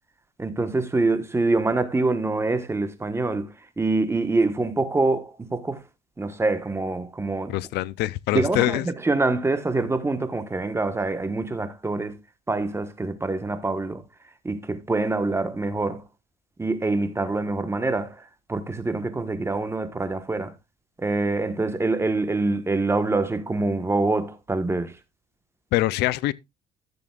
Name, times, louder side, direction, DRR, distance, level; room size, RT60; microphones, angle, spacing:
voice 1, 0.4-3.5 3.8-5.8 6.2-7.5 8.3-12.2 12.5-14.0 14.4-16.0 16.6-18.1 18.5-20.5 21.0-24.9, right 3 dB, 15° right, 1.2 m, -25 dB
voice 2, 7.5-8.9 25.7-26.3, left 17 dB, 80° left, 0.4 m, -24 dB
14.0 x 7.0 x 2.3 m
cardioid pair, 110°, 17 cm